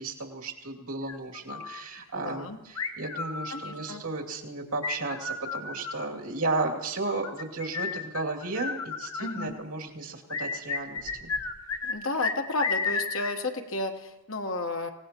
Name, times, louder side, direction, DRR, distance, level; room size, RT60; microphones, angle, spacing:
voice 1, 0.0-11.3, right 3 dB, 85° right, -1 dB, 2.6 m, -34 dB
sound 1, 1.1-1.8 2.8-3.9 4.8-6.1 7.0-9.5 10.3-12.0 12.2-13.4, left 5 dB, 90° left, 1.3 m, -33 dB
voice 2, 2.1-2.6 3.5-4.0 9.2-9.6 11.8-14.9, left 2 dB, 65° left, 5 dB, 1.2 m, -32 dB
26.0 x 17.5 x 3.0 m, 0.98 s
head